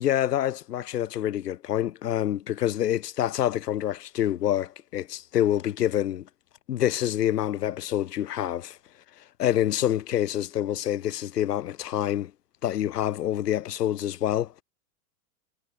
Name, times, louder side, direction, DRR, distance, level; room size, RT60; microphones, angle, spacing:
voice 1, 0.0-6.3 6.7-8.8 9.4-12.3 12.6-14.5, left 11 dB, 80° left, 6.3 m, -27 dB
hypercardioid pair, 130°, 47 cm